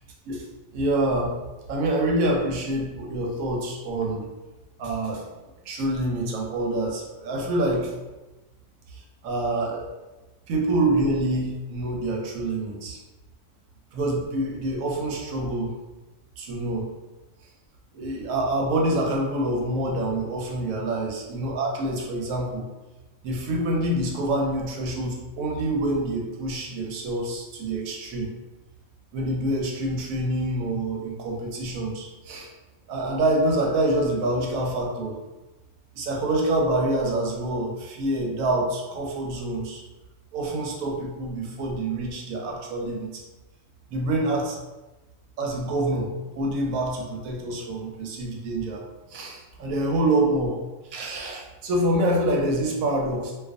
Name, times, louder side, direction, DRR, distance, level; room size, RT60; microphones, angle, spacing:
voice 1, 0.7-1.4 1.7-4.3 4.8-5.2 5.6-7.9 8.9-9.9 10.5-13.0 13.9-15.8 16.4-16.9 17.9-22.7 23.2-28.3 29.1-32.5 32.9-35.2 35.9-39.8 40.3-43.2 43.9-44.6 45.4-48.8 49.1-50.5 50.9-53.3, right 1 dB, 85° right, -1 dB, 1.0 m, -26 dB
2.4 x 2.2 x 2.4 m, 1.1 s
omnidirectional pair, 1.4 m